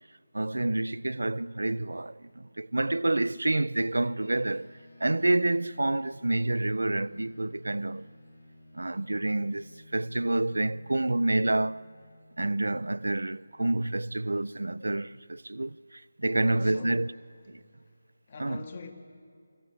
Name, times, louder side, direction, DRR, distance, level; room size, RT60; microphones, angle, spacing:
voice 1, 0.3-4.7 5.0-8.1 8.7-11.8 12.4-17.1 17.5-17.6 18.4-18.7, right 2 dB, 70° right, 0.4 m, -28 dB
sound 1, 4.2-13.9, left 1 dB, 75° left, 3.7 m, -55 dB
voice 2, 16.4-17.0 18.3-18.9, left 4 dB, 40° left, 1.7 m, -43 dB
23.5 x 15.0 x 8.4 m
figure-of-eight pair, 155°, 0 cm